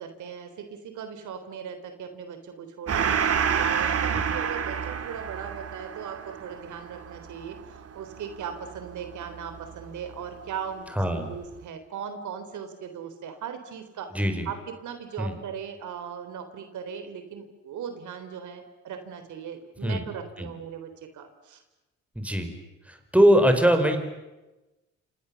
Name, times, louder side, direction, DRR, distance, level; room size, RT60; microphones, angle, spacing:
voice 1, 0.0-3.1 3.6-14.1 14.5-21.6, right 7 dB, 75° right, 8 dB, 3.7 m, -38 dB
Gong, 2.9-9.8, right 7 dB, 50° right, 2.4 m, -29 dB
voice 2, 11.0-11.3 14.1-14.5 15.2-15.3 19.8-20.0 20.4-20.5 22.1-22.5 22.9-24.0, equal, 5° right, 6 dB, 5.0 m, -22 dB
29.5 x 27.0 x 7.1 m, 1.0 s
cardioid pair, 90°, 30 cm